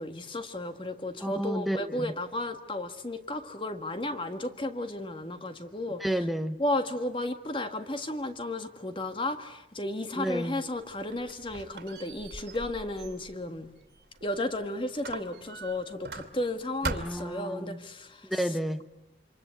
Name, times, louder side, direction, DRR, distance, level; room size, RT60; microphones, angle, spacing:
voice 1, 0.0-6.0 6.6-13.7 14.2-18.3, left 1 dB, 30° left, 8 dB, 1.7 m, -33 dB
voice 2, 1.2-2.2 6.0-6.6 10.2-10.6 16.8-17.8 18.2-18.8, equal, ahead, 9 dB, 1.0 m, -31 dB
Squeak, 10.8-14.6 15.0-16.5 16.8-17.4, right 3 dB, 75° right, 2.5 m, -40 dB
28.0 x 25.5 x 8.3 m, 0.91 s
head